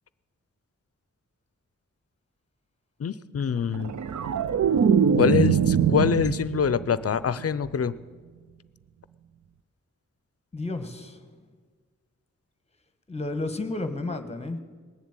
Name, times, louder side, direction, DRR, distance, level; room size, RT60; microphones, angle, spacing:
voice 1, 3.0-3.9 5.2-7.9, left 7 dB, 50° left, 16 dB, 0.5 m, -25 dB
sound 1, 3.7-6.9 7.3-7.6, right 7 dB, 65° right, 0.5 m, -23 dB
voice 2, 10.5-11.4 13.1-14.6, left 2 dB, 20° left, 8 dB, 1.2 m, -32 dB
19.5 x 7.3 x 8.9 m, 1.5 s
wide cardioid pair, 120°, 30 cm